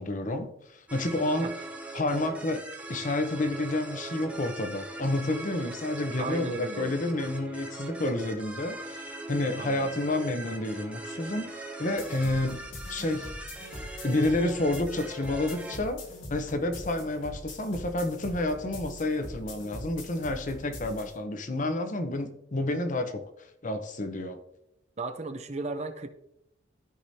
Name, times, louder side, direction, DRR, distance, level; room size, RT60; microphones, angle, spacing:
voice 1, 0.0-1.5 1.9-2.6 2.9-12.6 12.9-13.3 14.0-16.0 16.3-24.4, left 2 dB, 45° left, 8 dB, 0.8 m, -30 dB
sound 1, 0.9-15.8, right 2 dB, 5° right, 0.9 m, -40 dB
voice 2, 6.2-6.9 9.6-9.9 25.0-26.1, right 3 dB, 35° right, 9 dB, 0.6 m, -35 dB
sound 2, 12.0-21.2, left 1 dB, 90° left, 2.3 m, -42 dB
13.5 x 4.9 x 2.8 m, 0.78 s
head